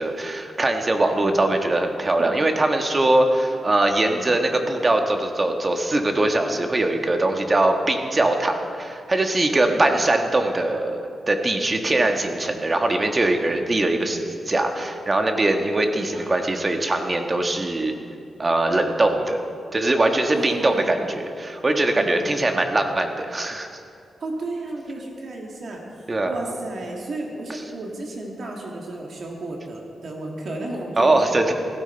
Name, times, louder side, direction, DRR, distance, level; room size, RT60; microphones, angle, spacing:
voice 1, 0.0-11.0 11.3-17.9 18.4-19.4 19.7-23.7 26.1-26.3 31.0-31.5, right 2 dB, 30° right, 4 dB, 1.4 m, -21 dB
voice 2, 4.1-4.4 9.6-9.9 15.9-16.3 20.3-21.0 21.9-22.2 24.2-31.5, right 2 dB, 65° right, 0 dB, 2.0 m, -34 dB
16.0 x 13.5 x 4.4 m, 2.4 s
cardioid pair, 85°, 0 cm